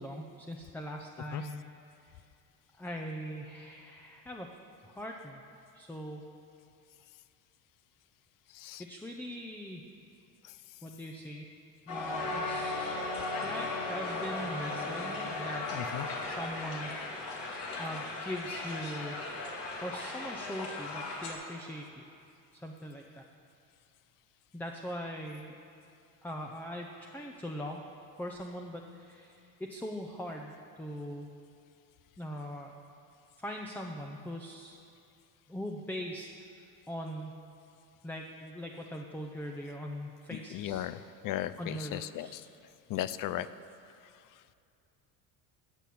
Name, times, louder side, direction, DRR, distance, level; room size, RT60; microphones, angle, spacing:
voice 1, 0.0-1.7 2.0-2.2 2.8-4.5 4.8-5.4 5.7-6.3 8.8-9.8 10.8-11.5 11.9-13.0 13.4-15.7 16.2-17.0 17.8-19.2 19.8-22.0 22.5-23.2 24.5-25.5 26.2-27.8 28.2-31.3 32.2-32.7 33.4-34.8 35.5-37.4 38.0-40.9 41.6-42.4, equal, 5° left, 2 dB, 0.7 m, -41 dB
Crowd, 11.9-21.3, left 2 dB, 70° left, 2.4 m, -36 dB
voice 2, 40.5-41.0 41.2-42.3 42.9-43.5, left 13 dB, 50° left, 15 dB, 0.6 m, -35 dB
14.5 x 5.9 x 8.6 m, 2.5 s
supercardioid pair, 110°, 41 cm